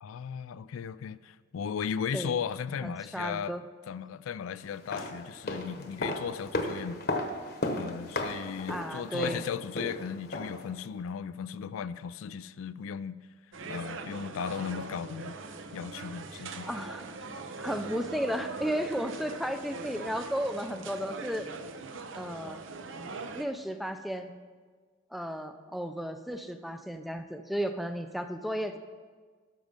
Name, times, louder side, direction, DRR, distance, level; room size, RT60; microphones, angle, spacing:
voice 1, 0.0-3.5 3.9-7.0 7.7-13.2 13.7-15.4 15.7-16.7, left 7 dB, 85° left, 0.3 m, -36 dB
voice 2, 2.8-3.6 8.7-9.4 16.3-17.0 17.6-21.5 22.1-22.6 23.3-24.3 25.1-28.8, equal, ahead, 0.4 m, -34 dB
sound 1, 4.7-10.7 11.0-11.1, left 2 dB, 50° left, 1.0 m, -35 dB
sound 2, 13.5-23.4, right 4 dB, 70° right, 0.6 m, -41 dB
12.0 x 6.5 x 5.2 m
head